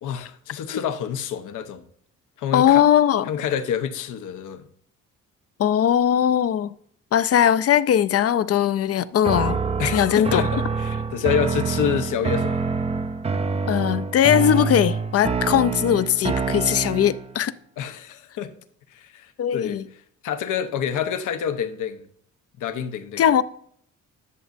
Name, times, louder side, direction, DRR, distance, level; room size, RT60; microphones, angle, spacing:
voice 1, 0.0-1.8 2.4-2.8 3.3-4.6 9.8-12.6 17.8-18.5 18.9-19.8 20.2-22.0 22.6-23.2, left 8 dB, 85° left, 0.9 m, -27 dB
voice 2, 2.5-3.3 5.6-6.7 7.1-9.6 9.9-10.4 13.7-17.5 19.4-19.9 23.2-23.4, left 10 dB, 50° left, 0.5 m, -19 dB
sound 1, 9.2-17.3, right 5 dB, 20° right, 0.4 m, -26 dB
11.0 x 6.3 x 2.5 m
cardioid pair, 90°, 30 cm